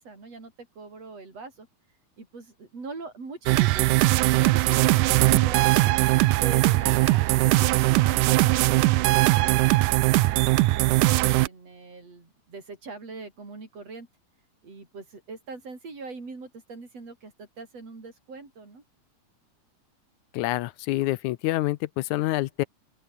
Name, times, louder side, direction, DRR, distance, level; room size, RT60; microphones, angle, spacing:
voice 1, 0.0-1.7 2.2-3.9 4.3-6.0 6.4-14.1 14.6-18.8, right 3 dB, 45° right, 7.4 m, -42 dB
sound 1, 3.5-11.5, right 19 dB, 80° right, 2.1 m, -20 dB
voice 2, 20.3-22.6, left 17 dB, 75° left, 1.9 m, -27 dB
open air
omnidirectional pair, 3.9 m